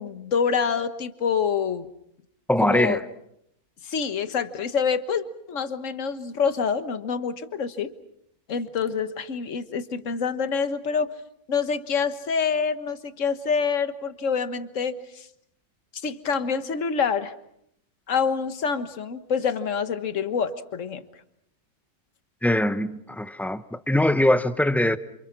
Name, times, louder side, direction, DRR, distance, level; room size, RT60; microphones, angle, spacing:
voice 1, 0.0-1.9 2.6-3.0 3.8-7.9 8.5-11.1 11.5-15.3 16.0-17.3 18.1-21.0, left 6 dB, 55° left, 1.6 m, -26 dB
voice 2, 2.5-3.0 22.4-25.0, left 1 dB, ahead, 0.6 m, -22 dB
28.5 x 28.0 x 6.0 m
omnidirectional pair, 1.6 m